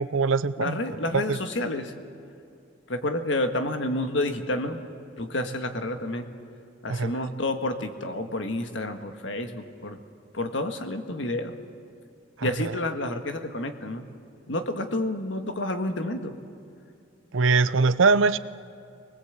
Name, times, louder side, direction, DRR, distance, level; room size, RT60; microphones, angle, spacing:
voice 1, 0.0-0.8 1.1-1.4 6.9-7.1 12.4-12.7 17.3-18.4, right 4 dB, 85° right, 14 dB, 0.7 m, -22 dB
voice 2, 0.6-1.9 2.9-4.9 5.2-6.3 6.8-10.0 10.3-11.5 12.4-14.0 14.5-16.3, left 1 dB, 70° left, 6 dB, 1.7 m, -29 dB
24.5 x 20.0 x 8.2 m, 2.6 s
head